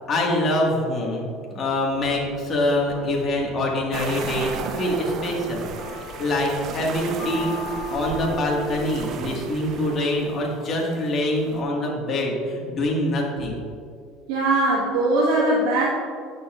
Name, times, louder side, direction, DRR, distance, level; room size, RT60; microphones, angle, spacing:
voice 1, 0.1-5.7 6.2-7.5 7.9-13.6, left 1 dB, 35° left, -2 dB, 1.6 m, -25 dB
sound 1, 1.9-9.9, equal, 85° left, 1.4 m, -38 dB
sound 2, 3.9-11.6, right 6 dB, 50° right, 0.5 m, -35 dB
voice 2, 14.3-15.9, right 2 dB, 80° right, -6 dB, 1.4 m, -20 dB
9.8 x 6.8 x 2.4 m, 2.3 s
supercardioid pair, 120°, 0 cm